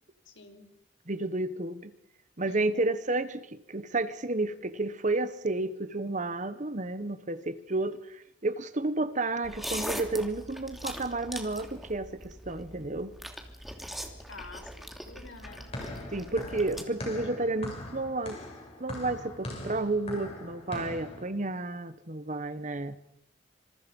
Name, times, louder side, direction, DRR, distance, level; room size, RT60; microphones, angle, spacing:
voice 1, 0.3-0.7 2.5-2.9 14.3-15.7, left 3 dB, 75° left, 5.4 m, -48 dB
voice 2, 1.1-1.9 2.4-13.1 16.1-18.4 18.8-23.0, right 2 dB, 40° right, 1.4 m, -31 dB
sound 1, 9.4-16.8, equal, ahead, 3.0 m, -41 dB
sound 2, 15.4-21.2, left 1 dB, 35° left, 7.6 m, -41 dB
27.5 x 27.0 x 5.5 m
head